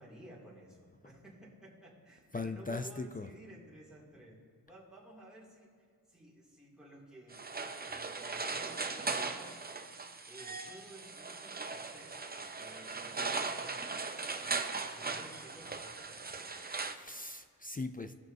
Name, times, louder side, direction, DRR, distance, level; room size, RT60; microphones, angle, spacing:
voice 1, 0.0-5.7 6.1-9.6 10.3-14.0 14.3-16.7, right 1 dB, ahead, -6 dB, 2.3 m, -55 dB
voice 2, 2.3-3.3 16.9-18.1, left 3 dB, 25° left, 8 dB, 0.3 m, -39 dB
sound 1, 7.3-16.9, right 4 dB, 25° right, 0.5 m, -39 dB
17.0 x 6.1 x 2.6 m, 2.1 s
wide cardioid pair, 80°, 39 cm